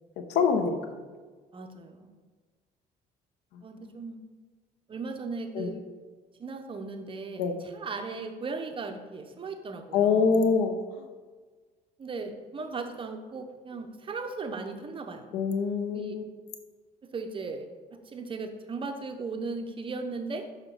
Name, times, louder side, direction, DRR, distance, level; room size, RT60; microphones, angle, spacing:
voice 1, 0.3-0.8 3.5-3.6 5.5-5.7 7.4-7.5 9.9-10.7 15.3-16.2, left 5 dB, 85° left, 7 dB, 0.8 m, -24 dB
voice 2, 1.5-2.1 3.6-4.2 4.9-5.8 6.4-10.3 12.0-15.3 15.9-16.2 17.0-20.5, right 4 dB, 30° right, 6 dB, 0.7 m, -37 dB
6.0 x 5.6 x 3.9 m, 1.4 s
cardioid pair, 110°, 17 cm